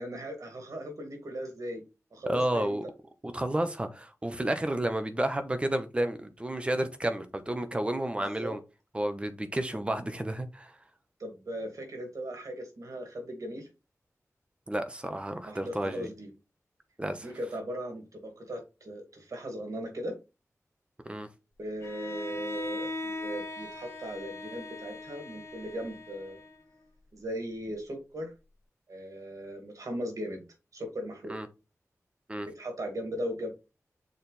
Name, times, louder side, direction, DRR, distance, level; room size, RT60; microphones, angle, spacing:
voice 1, 0.0-1.8 2.1-2.8 8.2-8.6 11.2-13.7 15.4-16.3 17.2-20.2 21.6-26.4 27.1-28.3 28.9-30.4 30.7-31.3 32.5-33.5, equal, 75° right, 2.3 m, -38 dB
voice 2, 2.3-2.8 3.3-8.6 8.9-10.8 14.7-16.1 17.0-17.3 21.0-21.3 31.3-31.5 32.3-32.5, right 1 dB, 20° right, 1.0 m, -31 dB
Bowed string instrument, 21.8-26.8, left 2 dB, 50° left, 1.6 m, -39 dB
6.5 x 4.4 x 3.4 m
wide cardioid pair, 110°, 6 cm